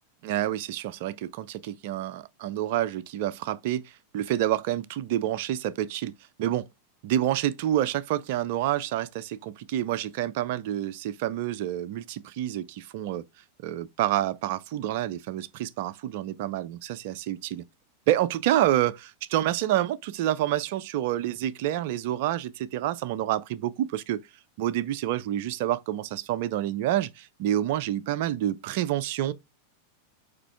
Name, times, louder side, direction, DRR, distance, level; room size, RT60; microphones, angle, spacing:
voice 1, 0.2-6.1 6.4-6.7 7.0-13.2 13.6-17.6 18.1-24.2 24.6-29.3, right 13 dB, 50° right, 0.5 m, -28 dB
5.0 x 4.4 x 4.7 m
figure-of-eight pair, 90°, 0 cm